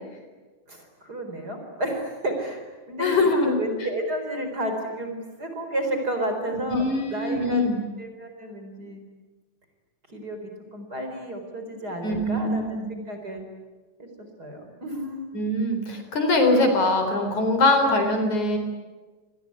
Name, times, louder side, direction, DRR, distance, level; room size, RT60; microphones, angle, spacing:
voice 1, 0.7-7.6 8.0-9.1 10.1-13.4 14.2-15.3, right 1 dB, 25° right, 4 dB, 4.6 m, -32 dB
voice 2, 3.0-3.5 6.7-7.8 12.0-12.9 15.3-18.6, left 2 dB, 60° left, 5 dB, 5.4 m, -22 dB
27.5 x 21.0 x 9.8 m, 1.3 s
omnidirectional pair, 3.9 m